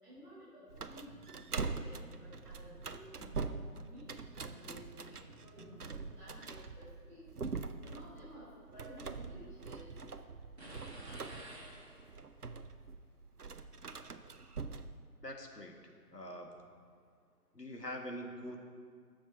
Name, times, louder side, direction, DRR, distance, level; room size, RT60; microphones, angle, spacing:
voice 1, 0.0-7.2 7.8-9.9, equal, 5° right, -23 dB, 3.4 m, -54 dB
sound 1, 0.7-6.2, right 2 dB, 25° right, 1.4 m, -57 dB
sound 2, 0.7-15.0, right 4 dB, 70° right, 0.7 m, -43 dB
sound 3, 10.6-12.4, right 1 dB, 40° right, 1.5 m, -50 dB
voice 2, 15.2-15.8 16.1-16.5 17.5-18.6, equal, 85° left, 2 dB, 1.8 m, -44 dB
19.0 x 7.2 x 4.3 m, 2.1 s
figure-of-eight pair, 165°, 48 cm